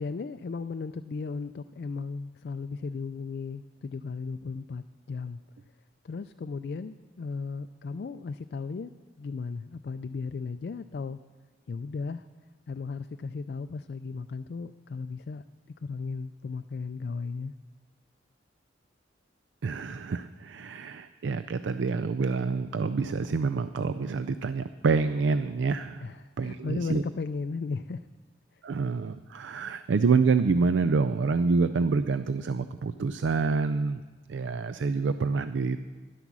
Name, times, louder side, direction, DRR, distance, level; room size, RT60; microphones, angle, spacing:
voice 1, 0.0-5.4 6.0-8.9 9.2-11.2 11.7-12.3 12.7-15.4 15.8-17.5 26.0-28.1 28.5-28.6, left 4 dB, 60° left, 10 dB, 0.3 m, -36 dB
voice 2, 19.6-27.0 28.6-34.0 34.3-35.8, right 4 dB, 90° right, 12 dB, 0.4 m, -27 dB
12.0 x 11.5 x 6.1 m, 1.4 s
head